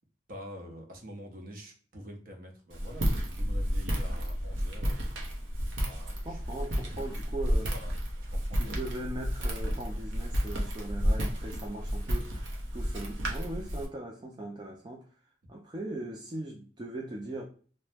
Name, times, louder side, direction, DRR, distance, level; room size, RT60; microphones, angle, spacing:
voice 1, 0.3-5.1 5.8-6.9 7.7-7.9 8.3-8.8, equal, 50° right, 0.7 m, -46 dB
Walk footsteps, 2.7-13.8, equal, 85° right, 0.7 m, -31 dB
voice 2, 6.2-7.7 8.5-15.1 15.5-17.4, right 1 dB, 25° right, 0.3 m, -39 dB
2.7 x 2.1 x 3.3 m
head